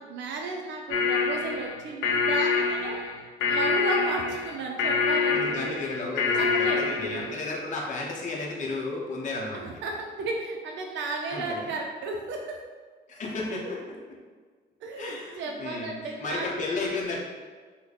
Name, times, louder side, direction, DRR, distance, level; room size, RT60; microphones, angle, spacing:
voice 1, 0.0-3.0 3.5-5.6 6.3-6.8 7.1-7.4 9.5-12.6 14.8-16.6, right 3 dB, 70° right, 1 dB, 0.4 m, -34 dB
sound 1, 0.9-7.3, left 5 dB, 90° left, 0.4 m, -26 dB
voice 2, 5.3-9.6 11.3-11.7 13.1-13.8 15.0-17.2, left 3 dB, 40° left, -2 dB, 0.7 m, -33 dB
3.1 x 2.1 x 3.9 m, 1.5 s
cardioid pair, 90°, 20 cm